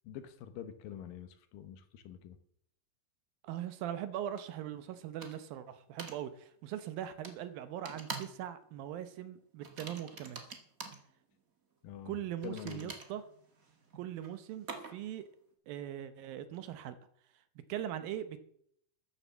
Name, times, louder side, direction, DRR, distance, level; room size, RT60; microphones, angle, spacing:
voice 1, 0.1-2.4 11.8-12.1 12.4-12.9, left 9 dB, 70° left, 10 dB, 2.5 m, -46 dB
voice 2, 3.4-10.4 12.1-13.2 14.0-15.3 15.7-17.0 17.7-18.4, right 11 dB, 75° right, 12 dB, 2.5 m, -40 dB
sound 1, 4.4-4.5 5.2-5.6 6.0-6.2 7.2-7.4 7.8-8.4 8.7-9.0 9.6-11.0 12.4-15.2, right 4 dB, 50° right, 1.0 m, -46 dB
13.5 x 10.5 x 6.9 m, 0.70 s
omnidirectional pair, 4.5 m